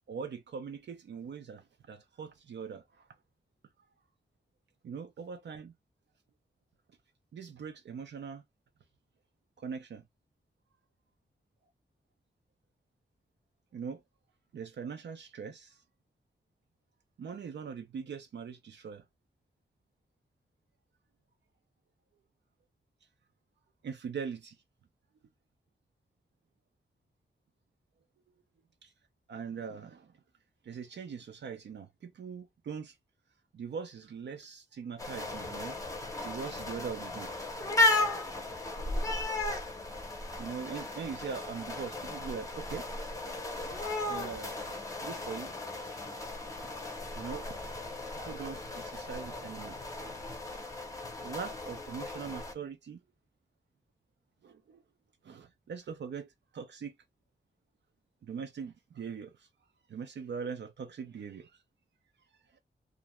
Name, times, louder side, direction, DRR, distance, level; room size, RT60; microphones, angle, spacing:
voice 1, 0.1-3.1 4.8-5.7 7.3-8.4 9.6-10.0 13.7-14.0 14.5-15.8 17.2-19.0 23.8-24.5 29.3-30.1 30.6-32.9 33.5-35.8 36.2-37.3 40.4-42.9 44.1-45.5 46.6-46.7 47.1-47.6 48.2-49.8 51.2-53.0 54.4-54.8 55.2-56.9 58.2-59.5 59.9-61.5, right 6 dB, 80° right, 0.5 m, -41 dB
sound 1, 35.0-52.5, left 2 dB, 20° left, 0.6 m, -35 dB
2.5 x 2.1 x 2.9 m
wide cardioid pair, 125°, 18 cm